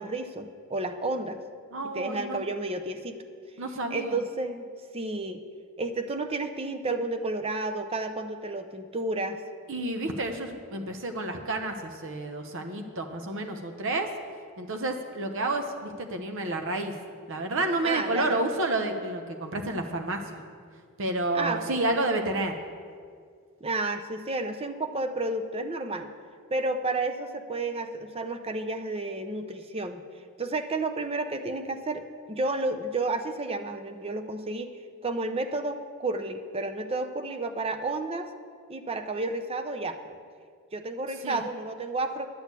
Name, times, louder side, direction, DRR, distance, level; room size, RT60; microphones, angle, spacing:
voice 1, 0.0-1.4 1.9-3.2 3.9-4.7 4.9-5.4 5.8-9.4 17.8-18.4 21.3-21.8 23.6-26.1 26.5-30.0 30.4-34.7 35.0-38.3 38.7-40.2 40.7-42.3, right 2 dB, 25° right, 7 dB, 0.6 m, -31 dB
voice 2, 1.7-2.4 3.6-4.2 9.7-14.1 14.6-16.9 17.3-20.4 21.0-22.6 41.2-41.4, right 2 dB, 60° right, 5 dB, 0.9 m, -30 dB
11.5 x 6.4 x 8.2 m, 2.1 s
head